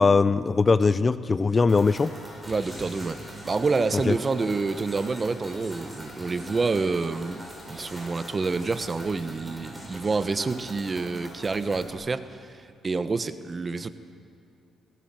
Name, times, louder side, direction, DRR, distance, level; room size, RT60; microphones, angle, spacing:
voice 1, 0.0-2.1 4.1-4.2, left 4 dB, 30° left, 15 dB, 0.5 m, -20 dB
sound 1, 1.7-11.9, equal, 5° right, 6.9 m, -42 dB
voice 2, 2.5-3.2 3.4-7.4 7.7-13.9, right 4 dB, 30° right, 12 dB, 1.0 m, -28 dB
20.5 x 17.0 x 7.5 m, 2.6 s
cardioid pair, 90°, 0 cm